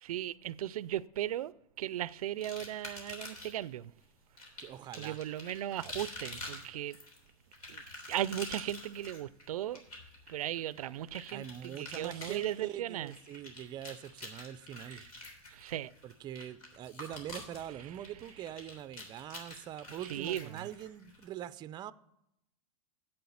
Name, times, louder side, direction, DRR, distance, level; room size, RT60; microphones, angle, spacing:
voice 1, 0.0-3.9 5.0-7.0 7.7-7.8 8.1-9.8 10.3-13.1 14.9-15.0 15.5-15.9 20.1-20.7, right 12 dB, 85° right, 0.4 m, -37 dB
sound 1, 2.4-3.7 4.4-21.2, left 2 dB, 85° left, 3.3 m, -47 dB
voice 2, 4.6-5.2 11.3-15.0 16.0-21.9, right 11 dB, 25° right, 0.4 m, -43 dB
7.9 x 7.7 x 7.1 m
hypercardioid pair, 120°, 18 cm